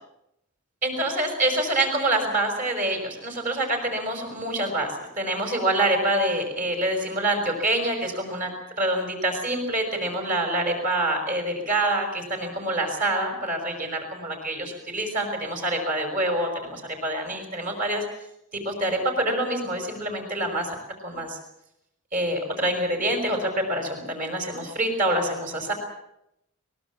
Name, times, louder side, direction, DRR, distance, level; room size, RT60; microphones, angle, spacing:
voice 1, 0.8-4.9 5.2-8.5 8.8-18.0 18.5-20.8 21.0-21.4 22.1-25.7, right 1 dB, 35° right, 3 dB, 5.7 m, -26 dB
23.0 x 20.0 x 7.2 m, 0.82 s
head